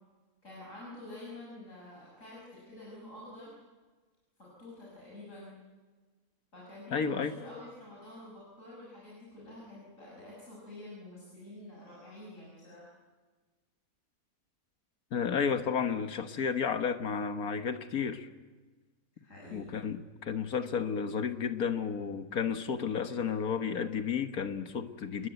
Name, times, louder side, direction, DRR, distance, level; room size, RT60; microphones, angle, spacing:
voice 1, 0.4-3.5 4.4-5.5 6.5-12.9 19.1-19.8, left 2 dB, 60° left, -5 dB, 7.2 m, -48 dB
voice 2, 6.9-7.3 15.1-18.3 19.5-25.3, left 6 dB, 80° left, 8 dB, 1.8 m, -32 dB
27.5 x 21.5 x 8.1 m, 1.4 s
omnidirectional pair, 1.5 m